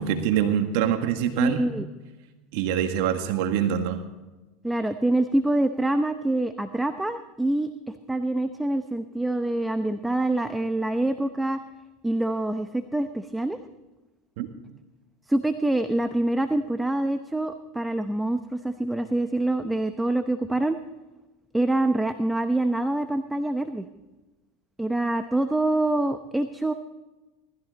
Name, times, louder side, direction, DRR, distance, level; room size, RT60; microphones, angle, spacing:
voice 1, 0.0-1.6 2.5-4.0 14.4-14.5, right 9 dB, 70° right, 6 dB, 1.7 m, -25 dB
voice 2, 1.4-1.8 4.6-7.7 8.1-11.6 12.0-13.6 15.3-20.8 21.5-23.9 24.8-26.7, right 2 dB, 5° right, 9 dB, 0.8 m, -25 dB
19.0 x 14.0 x 4.0 m, 1.1 s
supercardioid pair, 105°, 0 cm